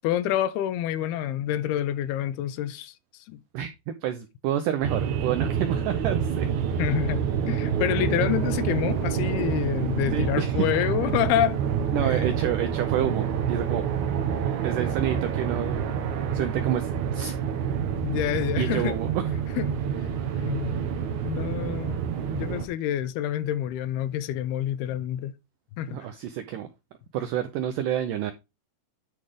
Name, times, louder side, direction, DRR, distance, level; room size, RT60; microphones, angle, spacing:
voice 1, 0.0-3.4 6.8-11.6 12.0-12.2 18.0-18.9 19.6-19.7 20.4-20.8 21.2-22.0 22.3-25.3 25.8-26.0, left 11 dB, 80° left, 2.7 m, -27 dB
voice 2, 3.5-6.5 10.1-10.7 11.9-13.9 14.6-15.9 16.3-17.3 18.6-19.2 25.9-26.7 27.1-28.3, right 10 dB, 80° right, 1.9 m, -28 dB
sound 1, 4.8-22.6, right 7 dB, 65° right, 2.1 m, -27 dB
10.5 x 4.9 x 3.7 m
omnidirectional pair, 4.6 m